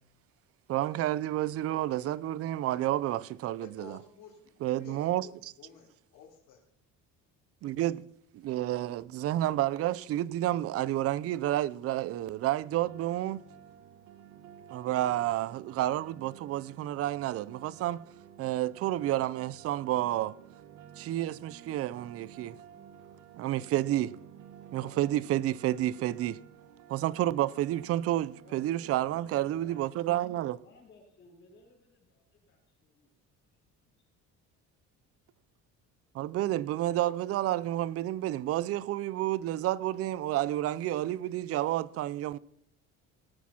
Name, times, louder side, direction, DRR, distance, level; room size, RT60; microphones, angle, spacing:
voice 1, 0.7-4.0 4.6-5.5 7.6-8.0 8.3-13.4 14.7-18.0 18.4-20.3 21.0-22.5 23.4-24.2 24.7-26.4 26.9-30.6 36.1-42.4, right 14 dB, 50° right, 0.6 m, -30 dB
voice 2, 3.6-6.6 24.7-25.1, left 6 dB, 65° left, 3.5 m, -52 dB
sound 1, 12.5-29.9, right 9 dB, 80° right, 1.5 m, -53 dB
voice 3, 28.4-30.0 30.6-33.1 33.8-34.1, left 3 dB, 35° left, 5.3 m, -59 dB
18.0 x 8.6 x 5.8 m
cardioid pair, 140°, 30 cm